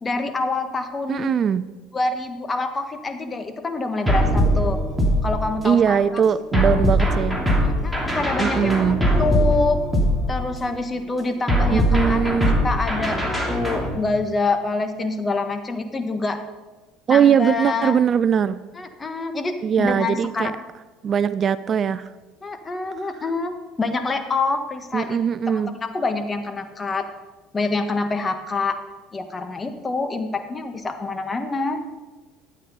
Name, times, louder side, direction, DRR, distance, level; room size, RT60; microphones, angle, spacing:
voice 1, 0.0-1.3 1.9-4.8 5.2-6.2 6.5-6.8 7.6-9.8 10.3-16.4 17.1-18.0 18.7-20.5 22.4-25.2 25.5-27.1 27.5-28.8 29.1-31.8, left 3 dB, 25° left, 8 dB, 1.4 m, -26 dB
voice 2, 1.1-1.7 5.6-7.4 8.4-9.0 11.7-12.6 17.1-18.6 19.6-20.5 21.0-22.1 24.9-25.7, right 8 dB, 45° right, 16 dB, 0.4 m, -20 dB
sound 1, 4.1-5.8 6.5-10.7 11.5-14.0, equal, ahead, 2.6 m, -21 dB
12.0 x 8.8 x 5.4 m, 1.3 s
hypercardioid pair, 75°, 0 cm